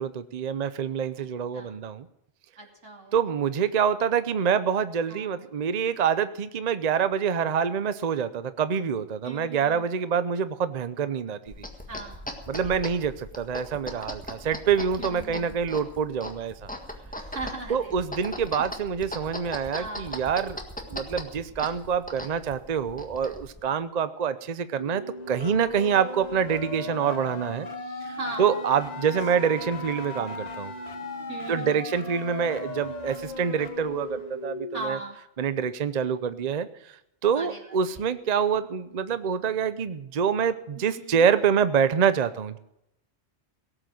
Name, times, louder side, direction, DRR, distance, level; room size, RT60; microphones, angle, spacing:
voice 1, 0.0-2.1 3.1-11.7 12.5-16.7 17.7-20.6 20.9-27.7 28.0-30.7 31.5-35.0 35.4-37.0 37.2-42.6, right 7 dB, 45° right, 12 dB, 0.7 m, -26 dB
voice 2, 2.6-3.2 5.1-5.3 9.2-9.9 11.9-12.3 12.8-12.9 15.0-15.6 17.2-17.9 18.7-18.8 19.7-20.1 28.2-28.5 30.1-30.3 31.3-31.8 34.7-35.2 37.3-37.6 37.9-38.1 40.8-41.2, right 2 dB, 85° right, 1 dB, 3.0 m, -39 dB
sound 1, 11.5-23.6, left 1 dB, 5° left, 1.6 m, -39 dB
sound 2, 24.8-34.8, left 2 dB, 35° left, 1.1 m, -37 dB
18.0 x 7.9 x 7.6 m, 0.82 s
omnidirectional pair, 1.2 m